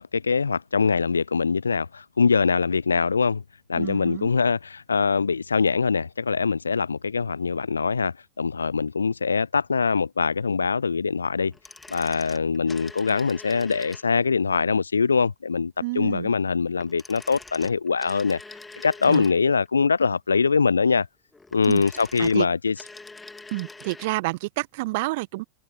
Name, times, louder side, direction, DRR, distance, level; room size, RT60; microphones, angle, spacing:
voice 1, 0.0-3.4 3.7-11.5 11.9-18.4 18.8-21.1 21.5-22.8, left 5 dB, 75° left, 0.3 m, -23 dB
voice 2, 3.8-4.3 15.8-16.3 19.1-19.3 21.7-21.8 22.2-22.5 23.5-25.4, right 22 dB, 50° right, 1.1 m, -29 dB
sound 1, 11.5-14.3 16.8-19.7 21.3-24.2 24.4-24.5, left 3 dB, 10° left, 2.4 m, -44 dB
figure-of-eight pair, 90°, 0 cm